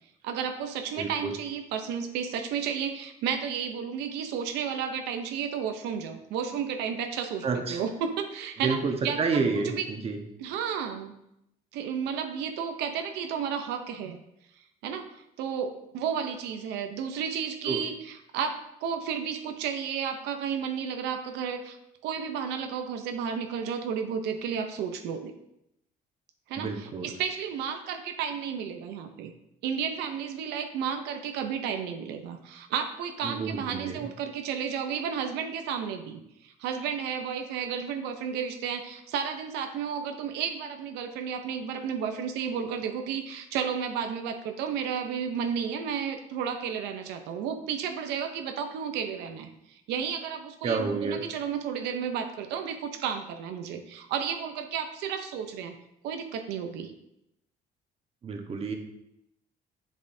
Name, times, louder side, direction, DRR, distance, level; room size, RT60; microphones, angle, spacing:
voice 1, 0.2-8.8 9.0-9.2 9.6-9.9 10.4-11.1 11.7-14.2 14.8-21.8 22.0-25.3 26.5-29.3 29.6-55.8 56.0-56.9, right 7 dB, 90° right, 5 dB, 0.7 m, -32 dB
voice 2, 1.0-1.3 7.4-7.8 8.6-10.2 17.6-17.8 26.6-27.1 33.2-34.1 50.6-51.2 58.2-58.7, right 4 dB, 35° right, 3 dB, 1.1 m, -29 dB
7.5 x 7.1 x 2.7 m, 0.81 s
cardioid pair, 110°, 17 cm